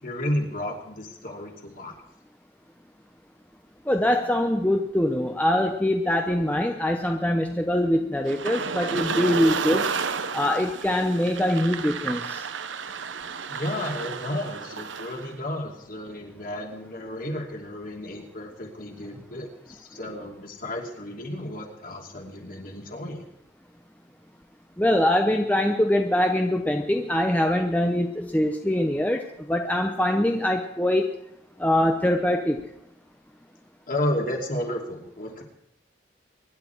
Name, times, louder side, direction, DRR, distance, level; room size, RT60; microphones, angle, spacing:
voice 1, 0.0-2.0 13.5-23.2 33.9-35.4, left 1 dB, 45° left, 1 dB, 2.8 m, -32 dB
voice 2, 3.9-9.9 10.3-12.4 24.8-31.1 31.6-32.6, left 1 dB, 10° left, 3 dB, 0.8 m, -23 dB
sound 1, 8.3-15.3, right 5 dB, 75° right, 0.9 m, -31 dB
24.5 x 11.0 x 4.7 m, 0.79 s
head